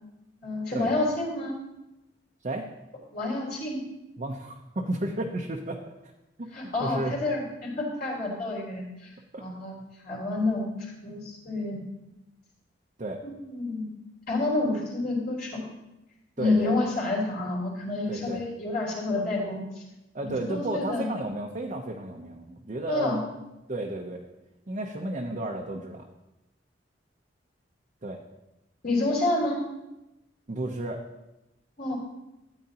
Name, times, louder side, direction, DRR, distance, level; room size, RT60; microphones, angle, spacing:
voice 1, 0.4-1.5 3.1-3.8 6.5-9.1 9.4-9.8 10.0-10.7 11.0-11.8 13.2-13.9 14.3-15.6 16.4-19.6 20.2-21.1 22.9-23.2 28.8-29.6 31.8-31.9, left 2 dB, 55° left, -5 dB, 3.4 m, -28 dB
voice 2, 4.2-5.8 6.4-6.5 6.8-7.1 9.3-9.4 13.0-13.2 16.4-16.7 18.1-18.4 20.1-23.2 23.7-24.3 24.7-26.0 28.0-28.2 30.5-31.0, right 2 dB, 40° right, 0 dB, 0.7 m, -32 dB
13.0 x 9.0 x 2.9 m, 0.94 s
head